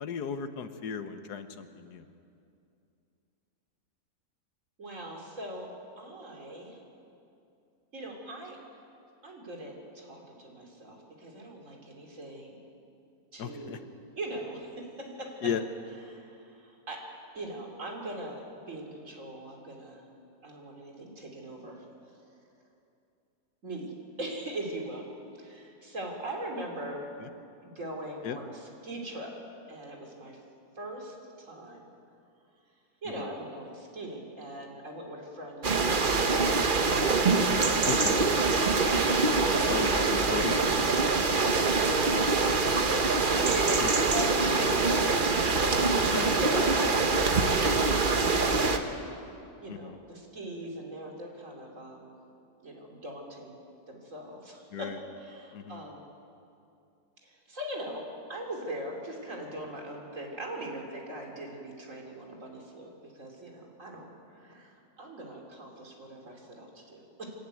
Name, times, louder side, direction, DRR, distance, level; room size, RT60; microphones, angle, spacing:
voice 1, 0.0-2.1 13.4-13.8 15.4-15.6 27.2-27.3 28.2-28.4 33.2-33.3 37.8-38.2 39.6-40.9 43.8-43.9 46.1-46.4 49.7-50.0 54.7-55.0 55.5-55.8, left 7 dB, 85° left, 9 dB, 1.6 m, -35 dB
voice 2, 4.8-5.7 6.0-6.8 7.9-8.6 9.2-12.6 13.3-13.8 14.2-15.3 16.1-17.1 17.3-20.0 20.4-21.8 23.6-23.9 24.2-25.1 25.4-27.1 27.6-29.3 29.7-30.4 30.8-31.9 33.0-36.9 38.2-38.5 38.8-39.1 41.2-41.5 42.1-46.0 46.4-48.8 49.6-52.1 52.6-53.6 53.9-56.0 57.2-64.1 64.3-67.2, right 1 dB, 55° right, 0 dB, 3.3 m, -40 dB
sound 1, 35.6-48.8, right 3 dB, 35° right, 1.1 m, -24 dB
27.0 x 11.5 x 9.2 m, 2.6 s
omnidirectional pair, 1.7 m